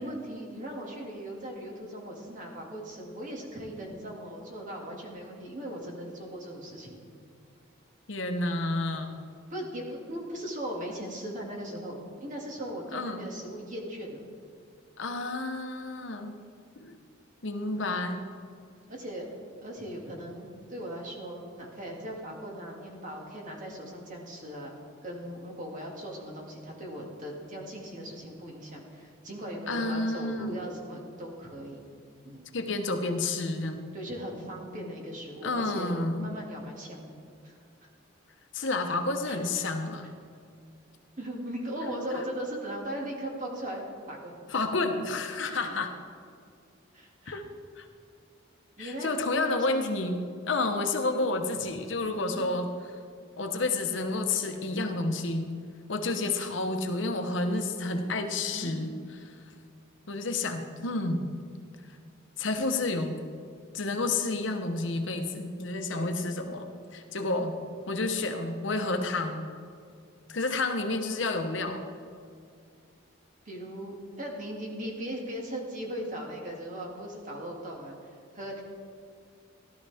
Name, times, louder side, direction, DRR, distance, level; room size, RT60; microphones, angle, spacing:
voice 1, 0.0-7.0 9.5-14.2 17.7-17.9 18.9-19.3 19.6-24.7 25.0-31.8 32.2-32.5 33.9-37.2 37.4-37.6 39.2-39.7 40.0-40.1 41.2-44.4 45.5-45.7 46.9-47.4 48.8-49.8 50.7-50.9 52.1-52.4 58.4-58.7 65.9-66.1 73.5-78.0 78.3-78.6, right 1 dB, 40° right, -1 dB, 2.2 m, -38 dB
voice 2, 8.1-9.2 12.9-13.2 15.0-16.4 16.8-17.0 17.4-18.3 29.7-30.6 32.5-33.8 35.4-36.3 38.5-40.1 42.1-42.2 44.5-45.9 47.3-47.4 47.8-47.9 48.8-52.7 53.4-55.5 55.9-58.9 59.2-59.3 60.1-61.2 62.4-63.2 63.7-66.7 66.9-67.6 67.9-69.5 70.3-71.9, left 2 dB, 70° left, 5 dB, 1.0 m, -30 dB
16.0 x 12.0 x 3.5 m, 2.3 s
head